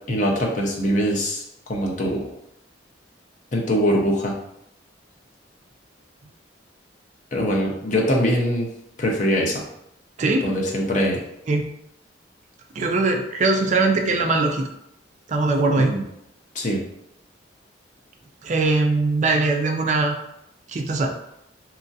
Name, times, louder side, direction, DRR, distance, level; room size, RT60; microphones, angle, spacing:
voice 1, 0.1-1.4 1.7-2.3 3.5-4.4 7.3-8.7 9.0-9.6 10.4-11.2 15.8-16.0 16.5-16.8, equal, 40° left, -1 dB, 0.5 m, -22 dB
voice 2, 10.2-10.5 11.5-11.7 12.7-14.7 15.3-15.9 18.4-20.2 20.7-21.1, right 3 dB, 40° right, 3 dB, 0.3 m, -21 dB
3.0 x 2.4 x 2.6 m, 0.81 s
head